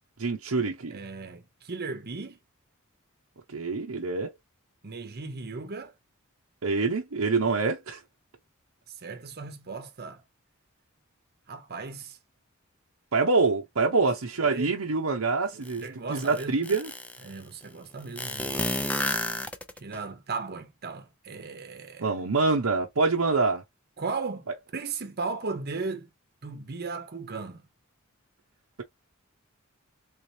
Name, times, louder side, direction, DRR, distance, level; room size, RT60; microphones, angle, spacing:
voice 1, 0.2-1.0 3.5-4.3 6.6-8.0 13.1-16.9 22.0-23.6, right 4 dB, 85° right, 0.8 m, -25 dB
voice 2, 0.9-2.4 4.8-5.9 8.9-10.2 11.5-12.2 14.4-14.7 15.5-16.8 17.2-18.7 19.8-22.1 24.0-26.1 26.4-27.7, right 4 dB, 50° right, 0.9 m, -36 dB
sound 1, 15.6-15.7 16.1-17.3 18.2-20.0, left 1 dB, 5° left, 0.5 m, -30 dB
3.6 x 3.2 x 2.8 m
head